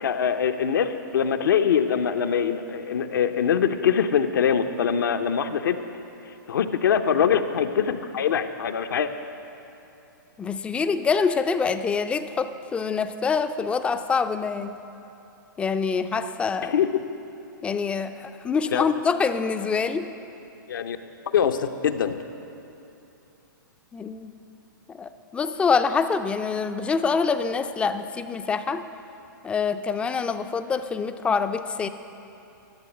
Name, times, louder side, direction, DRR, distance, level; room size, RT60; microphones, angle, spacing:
voice 1, 0.0-5.8 6.5-9.1 16.6-17.0 18.7-18.8 20.7-21.0 21.3-22.2, left 7 dB, 75° left, 7 dB, 0.7 m, -23 dB
voice 2, 10.4-14.8 15.6-16.7 17.6-20.1 23.9-24.3 24.9-28.8 29.4-31.9, left 5 dB, 10° left, 10 dB, 0.4 m, -25 dB
12.0 x 7.2 x 8.1 m, 2.8 s
hypercardioid pair, 135°, 11 cm